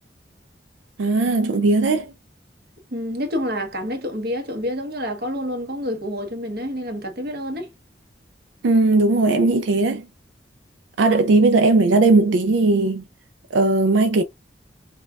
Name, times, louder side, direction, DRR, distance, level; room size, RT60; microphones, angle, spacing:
voice 1, 1.0-2.1 8.6-10.1 11.0-13.0 13.5-14.2, right 3 dB, 90° right, 0.4 m, -18 dB
voice 2, 2.9-7.7, equal, 55° right, 1.1 m, -28 dB
5.2 x 2.3 x 2.3 m
head